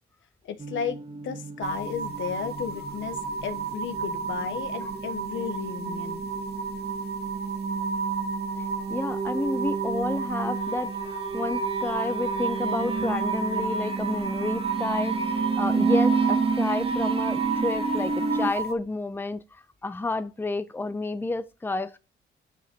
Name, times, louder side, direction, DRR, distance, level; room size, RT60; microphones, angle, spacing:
voice 1, 0.4-6.2, left 8 dB, 75° left, 1.3 m, -34 dB
sound 1, 0.6-18.5, right 5 dB, 25° right, 0.9 m, -31 dB
sound 2, 1.6-18.7, right 5 dB, 55° right, 1.5 m, -32 dB
voice 2, 8.9-22.0, left 2 dB, 10° left, 0.7 m, -30 dB
9.3 x 5.6 x 4.6 m
cardioid pair, 90°, 20 cm